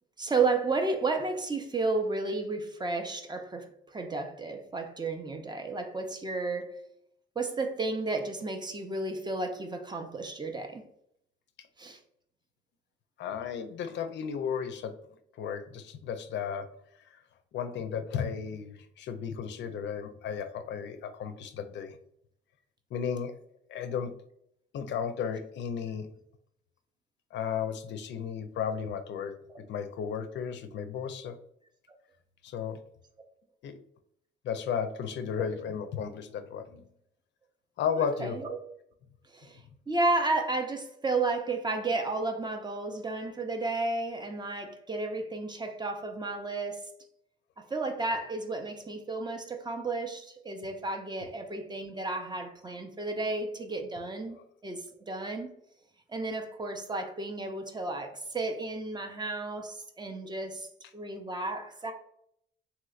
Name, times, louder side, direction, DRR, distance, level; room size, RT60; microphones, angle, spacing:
voice 1, 0.2-6.7 7.4-10.8 11.8-12.0 29.5-29.6 38.0-38.6 39.3-39.6 39.9-46.9 47.7-54.4 54.6-55.5 56.1-60.7 60.9-61.9, right 3 dB, 20° right, 0.5 m, -32 dB
voice 2, 13.2-14.9 15.4-16.7 17.1-17.2 17.5-22.0 22.9-23.3 23.7-24.1 24.7-26.1 27.3-29.3 29.7-31.4 32.4-32.8 33.6-33.8 34.4-36.9 37.8-38.4, left 7 dB, 65° left, 0.4 m, -34 dB
3.1 x 2.8 x 2.4 m
cardioid pair, 90°, 20 cm